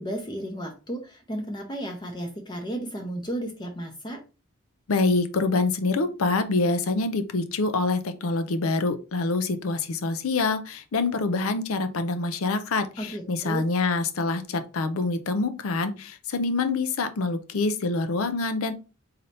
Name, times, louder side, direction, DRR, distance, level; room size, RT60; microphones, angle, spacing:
voice 1, 0.0-4.2 13.0-13.6, right 1 dB, 20° left, 2 dB, 0.6 m, -33 dB
voice 2, 4.9-18.7, left 3 dB, 80° left, 9 dB, 0.5 m, -26 dB
4.0 x 2.7 x 3.2 m, 0.32 s
head